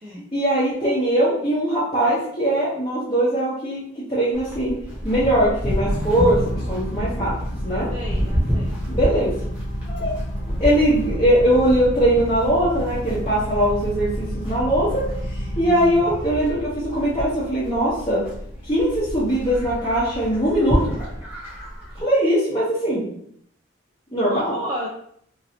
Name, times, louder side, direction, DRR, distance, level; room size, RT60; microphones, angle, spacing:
voice 1, 0.3-4.8 5.0-6.4 6.7-7.3 7.6-7.9 8.9-9.3 9.9-10.2 10.6-15.0 15.6-18.2 18.6-20.8 22.0-23.0 24.1-24.5, right 1 dB, 20° left, -11 dB, 0.8 m, -21 dB
Livestock farm animals working animals, 4.3-22.0, equal, 10° right, 1.0 m, -31 dB
sound 1, 5.6-20.1, equal, 75° left, 0.7 m, -30 dB
voice 2, 7.9-8.8 24.3-24.9, equal, 25° right, -5 dB, 0.4 m, -32 dB
3.1 x 2.6 x 2.8 m, 0.67 s
head